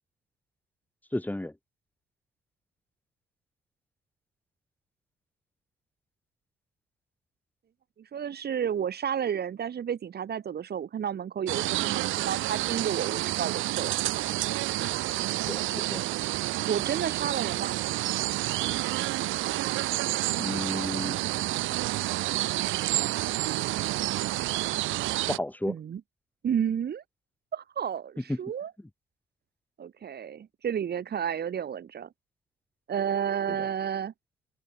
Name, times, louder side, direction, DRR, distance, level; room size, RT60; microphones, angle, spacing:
voice 1, 1.1-1.5 15.5-16.0 20.4-21.9 25.3-25.8 28.3-28.4 33.5-33.7, left 1 dB, 10° left, 4.1 m, -33 dB
voice 2, 8.1-14.2 16.7-17.7 25.7-26.0 26.4-27.0 27.5-28.7 29.8-32.1 32.9-34.1, right 8 dB, 55° right, 2.2 m, -31 dB
sound 1, 11.5-25.4, right 17 dB, 85° right, 0.5 m, -29 dB
open air
cardioid pair, 90°, 20 cm